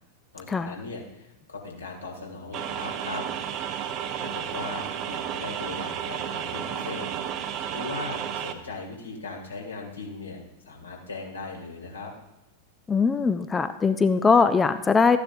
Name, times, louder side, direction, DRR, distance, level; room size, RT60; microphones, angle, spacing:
voice 1, 0.3-3.2 4.2-7.1 7.7-12.1, left 3 dB, 75° left, -1 dB, 2.2 m, -38 dB
sound 1, 2.5-8.5, right 9 dB, 35° right, 0.7 m, -32 dB
voice 2, 12.9-15.2, left 5 dB, 15° left, 11 dB, 0.4 m, -21 dB
13.0 x 9.6 x 2.6 m, 0.96 s
figure-of-eight pair, 90°, 0 cm